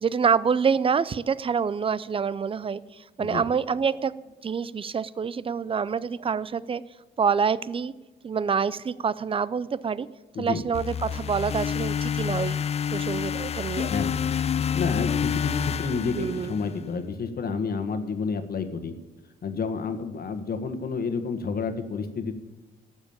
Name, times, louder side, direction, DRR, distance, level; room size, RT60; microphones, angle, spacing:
voice 1, 0.0-4.1 4.4-6.8 7.2-7.9 8.2-10.1 10.4-12.6 12.9-13.9 16.2-16.5, right 6 dB, 25° right, 19 dB, 0.5 m, -26 dB
sound 1, 10.7-16.9, left 8 dB, 30° left, 0.4 m, -28 dB
voice 2, 14.7-18.9 19.4-22.3, left 4 dB, 50° left, 7 dB, 1.4 m, -30 dB
12.5 x 7.2 x 8.8 m, 1.2 s
cardioid pair, 90°, 20 cm